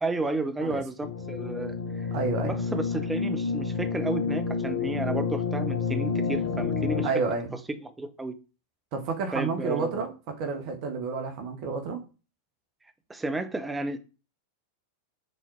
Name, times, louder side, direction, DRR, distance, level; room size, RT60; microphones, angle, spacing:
voice 1, 0.0-2.1 2.4-7.1 7.5-8.4 9.3-10.1 13.1-14.0, right 2 dB, 10° right, 1.0 m, -32 dB
sound 1, 1.0-7.1, left 5 dB, 50° left, 1.1 m, -29 dB
voice 2, 2.1-2.5 7.0-7.5 8.9-10.1 10.4-12.0, right 4 dB, 45° right, 1.6 m, -30 dB
6.9 x 4.3 x 4.8 m
figure-of-eight pair, 90°, 0 cm